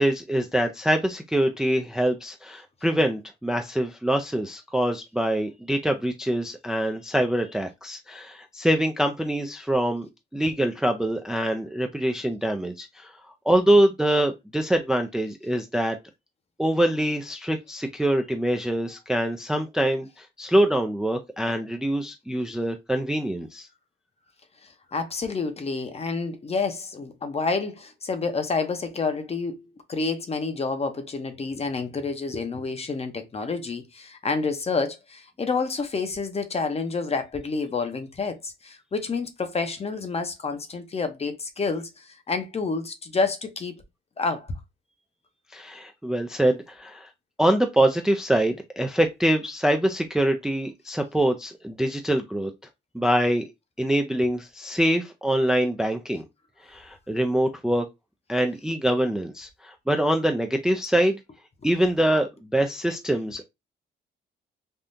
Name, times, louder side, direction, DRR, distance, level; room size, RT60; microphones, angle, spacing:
voice 1, 0.0-10.1 10.3-13.1 13.5-16.0 16.6-23.7 45.5-47.1 47.4-52.5 52.9-53.4 53.8-56.2 56.6-57.9 58.3-61.2 61.6-63.4, right 1 dB, 5° right, 0.3 m, -24 dB
voice 2, 24.9-43.8 44.2-44.5, left 4 dB, 30° left, 0.7 m, -29 dB
3.6 x 2.3 x 2.6 m
cardioid pair, 90°, 20 cm